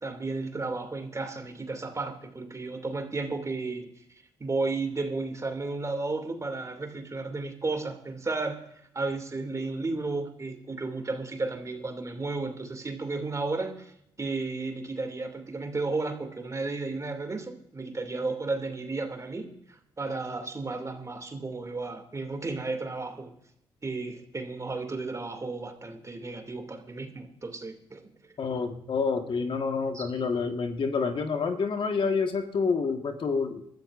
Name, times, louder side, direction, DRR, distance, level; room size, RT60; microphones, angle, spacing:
voice 1, 0.0-3.9 4.4-8.6 8.9-13.9 14.2-19.6 20.0-23.3 23.8-28.2 29.9-30.1, right 3 dB, 30° right, 6 dB, 2.6 m, -33 dB
voice 2, 28.4-33.6, left 5 dB, 55° left, 5 dB, 1.6 m, -28 dB
23.0 x 13.5 x 2.6 m, 0.74 s
hypercardioid pair, 50°, 11 cm